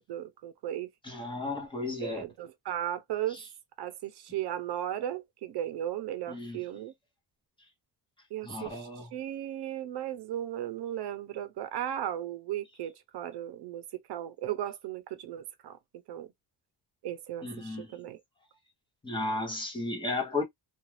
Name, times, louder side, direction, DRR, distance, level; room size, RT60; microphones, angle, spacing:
voice 1, 0.1-0.9 2.0-3.4 3.8-6.9 8.3-15.8 16.1-16.3 17.0-18.2, right 11 dB, 65° right, 0.7 m, -36 dB
voice 2, 1.0-2.2 3.3-3.4 6.3-6.6 8.4-9.1 17.4-17.9 19.0-20.4, left 2 dB, 10° left, 0.9 m, -34 dB
2.4 x 2.4 x 3.1 m
cardioid pair, 165°, 43 cm